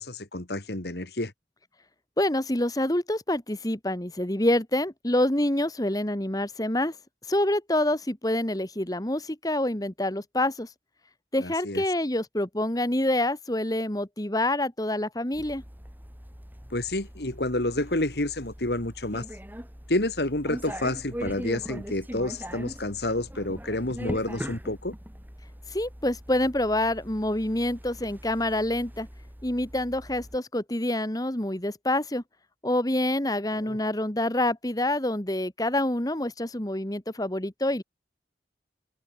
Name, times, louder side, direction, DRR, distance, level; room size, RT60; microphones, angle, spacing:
voice 1, 0.0-1.3 11.4-11.8 16.7-19.2 19.9-24.9 33.5-33.8, left 1 dB, 65° left, 2.7 m, -29 dB
voice 2, 2.2-7.0 7.3-10.7 11.3-15.6 25.7-29.1 29.4-32.2 32.6-37.8, left 1 dB, 20° left, 1.7 m, -27 dB
sound 1, 15.3-30.4, equal, 10° right, 6.0 m, -41 dB
head